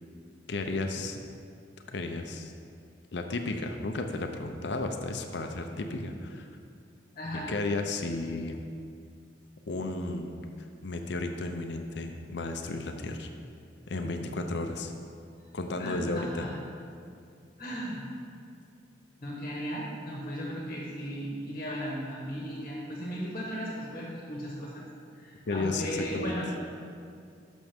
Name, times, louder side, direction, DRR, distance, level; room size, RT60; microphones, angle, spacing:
voice 1, 0.5-1.2 1.9-2.5 3.1-6.5 7.3-8.6 9.7-10.3 10.8-13.3 13.9-14.9 15.5-16.4 25.5-26.3, left 2 dB, 60° left, 4 dB, 0.6 m, -33 dB
voice 2, 7.1-7.5 15.8-16.5 17.6-18.0 19.2-24.8 25.1-26.5, equal, 35° left, -3 dB, 1.3 m, -36 dB
11.5 x 6.2 x 3.6 m, 2.4 s
head